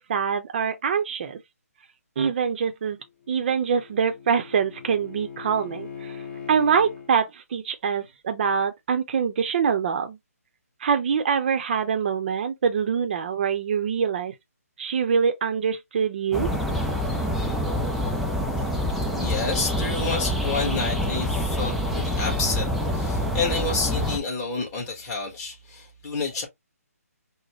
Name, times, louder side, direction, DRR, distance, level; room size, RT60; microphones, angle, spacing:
voice 1, 0.0-1.4 2.2-3.0 3.3-6.1 6.5-10.2 10.8-14.3 14.8-16.5, right 6 dB, 40° right, 0.7 m, -24 dB
Bowed string instrument, 3.0-7.1, left 7 dB, 40° left, 1.4 m, -41 dB
sound 1, 16.3-24.2, left 1 dB, ahead, 0.4 m, -26 dB
voice 2, 19.2-26.5, left 4 dB, 20° left, 1.3 m, -29 dB
4.1 x 2.1 x 3.0 m
hypercardioid pair, 155°, 9 cm